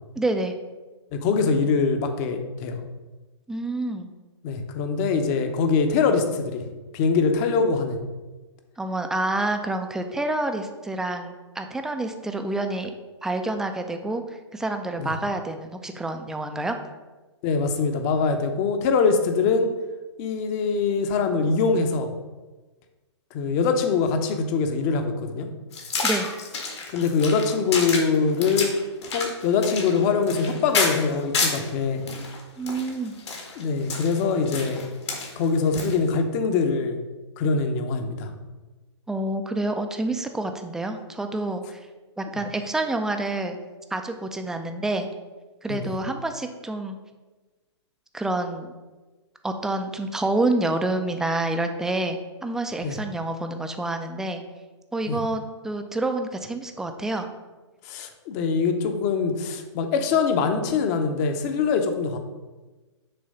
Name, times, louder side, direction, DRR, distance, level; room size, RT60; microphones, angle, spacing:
voice 1, 0.2-0.5 3.5-4.1 8.8-12.9 13.2-16.8 26.0-26.3 32.6-33.2 39.1-41.8 42.2-43.6 43.9-45.1 45.6-47.0 48.1-48.7 49.4-54.4 54.9-57.3, right 2 dB, 5° right, 6 dB, 0.4 m, -28 dB
voice 2, 1.1-2.8 4.4-6.7 6.9-8.0 15.0-15.1 17.4-19.7 20.2-22.1 23.3-25.5 26.9-28.7 29.1-32.0 33.5-34.9 35.4-37.0 37.4-38.3 45.7-45.9 52.8-53.0 55.1-55.2 57.8-62.2, left 5 dB, 35° left, 6 dB, 0.8 m, -23 dB
sound 1, 25.7-31.7 32.1-36.1, left 4 dB, 65° left, 1.7 m, -29 dB
6.7 x 3.1 x 5.4 m, 1.2 s
hypercardioid pair, 125°, 15 cm